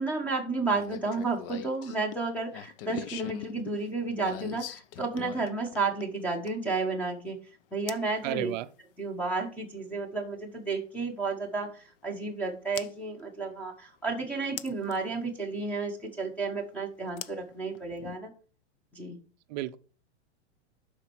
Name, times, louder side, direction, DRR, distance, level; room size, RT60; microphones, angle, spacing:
voice 1, 0.0-7.4 7.7-8.5 9.0-18.3 18.9-19.2, right 3 dB, 5° left, 1.1 m, -32 dB
sound 1, 0.7-6.7 7.9-8.1 10.0-10.1 12.8-12.9 14.6-15.0 17.2-18.2, left 11 dB, 50° left, 0.7 m, -41 dB
voice 2, 8.2-8.7 19.5-19.8, right 15 dB, 40° right, 0.6 m, -32 dB
11.5 x 4.4 x 4.6 m
hypercardioid pair, 145°, 35 cm